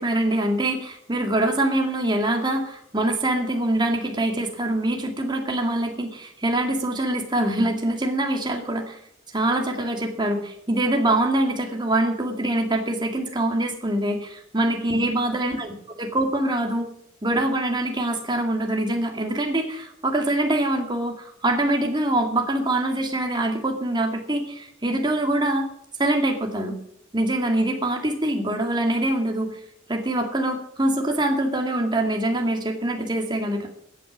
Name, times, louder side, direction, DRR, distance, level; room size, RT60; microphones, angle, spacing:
voice 1, 0.0-9.0 9.3-15.7 16.0-16.9 17.2-25.7 26.0-26.7 27.1-29.6 29.9-33.7, right 1 dB, 25° right, 2 dB, 2.0 m, -24 dB
14.0 x 9.0 x 7.1 m, 0.69 s
head